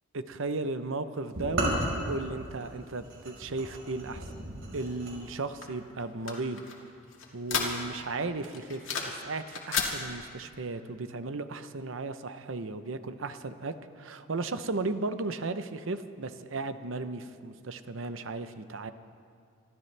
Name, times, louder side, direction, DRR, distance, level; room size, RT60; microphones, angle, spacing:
voice 1, 0.1-4.2 4.7-6.6 7.3-18.9, right 3 dB, 70° right, 11 dB, 0.7 m, -35 dB
sound 1, 1.3-5.2, right 1 dB, 90° right, 5.0 m, -34 dB
sound 2, 5.6-8.1 8.4-9.2 9.5-9.9, left 6 dB, 70° left, 2.3 m, -33 dB
26.0 x 13.5 x 3.4 m, 2.3 s
head